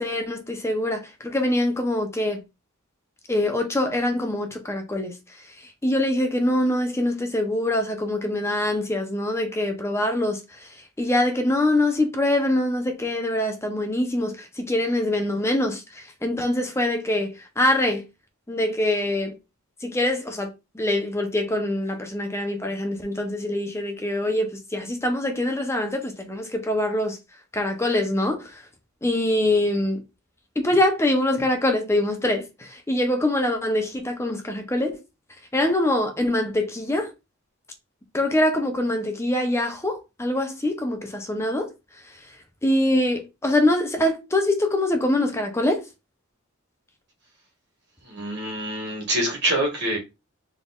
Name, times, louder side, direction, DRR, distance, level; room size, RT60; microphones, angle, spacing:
voice 1, 0.0-2.4 3.3-18.0 18.5-19.4 19.8-27.2 27.5-28.6 29.0-30.0 30.6-35.0 35.5-37.1 38.1-41.7 42.0-42.3 42.6-45.9, left 1 dB, 15° left, 0.6 m, -24 dB
voice 2, 48.0-50.0, right 1 dB, 55° right, 1.8 m, -25 dB
4.1 x 3.6 x 2.3 m
head